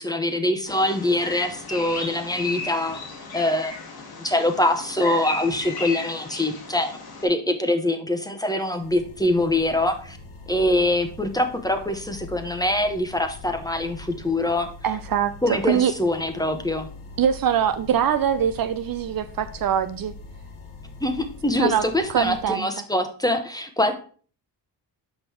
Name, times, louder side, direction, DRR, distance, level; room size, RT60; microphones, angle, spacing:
voice 1, 0.0-3.0 3.3-3.7 4.2-6.9 7.2-10.2 10.5-14.7 15.4-16.9 21.0-23.9, left 1 dB, 10° left, 6 dB, 1.0 m, -24 dB
Bird vocalization bird call bird song, 0.7-7.2, left 4 dB, 55° left, 1.8 m, -35 dB
sound 1, 8.7-22.4, left 3 dB, 85° left, 1.4 m, -43 dB
voice 2, 14.8-15.9 17.2-20.1 21.6-22.7, right 9 dB, 55° right, 11 dB, 0.6 m, -23 dB
6.5 x 5.2 x 4.5 m, 0.41 s
cardioid pair, 95°, 43 cm